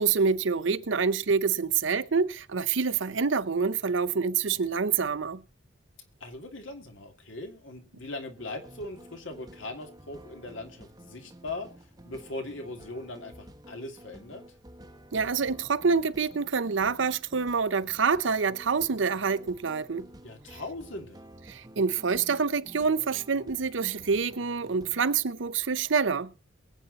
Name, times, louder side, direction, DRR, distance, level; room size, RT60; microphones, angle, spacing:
voice 1, 0.0-5.4 15.1-20.1 21.5-26.3, right 5 dB, 75° right, 0.7 m, -26 dB
voice 2, 6.2-11.7 12.0-14.4 20.2-21.2, left 2 dB, 75° left, 2.6 m, -40 dB
sound 1, 8.4-25.3, right 1 dB, 20° right, 0.9 m, -51 dB
22.5 x 8.3 x 4.0 m
head